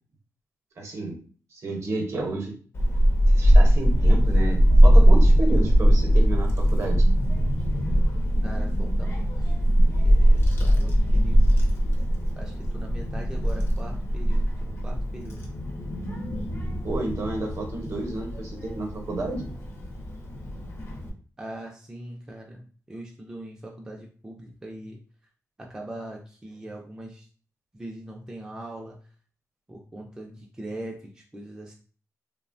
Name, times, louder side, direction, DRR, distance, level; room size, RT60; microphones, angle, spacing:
voice 1, 0.8-1.2 1.5-2.5 3.3-7.0 16.8-19.5, right 2 dB, 55° right, 2 dB, 0.7 m, -31 dB
Child speech kid speaking / Wind, 2.7-21.1, equal, 45° left, 0.5 m, -21 dB
voice 2, 8.4-9.5 10.0-11.7 12.4-15.4 21.4-25.0 25.6-27.3 27.7-29.0 29.7-31.7, right 1 dB, 10° right, 0 dB, 0.3 m, -41 dB
3.1 x 2.0 x 2.5 m, 0.41 s
wide cardioid pair, 165°, 6 cm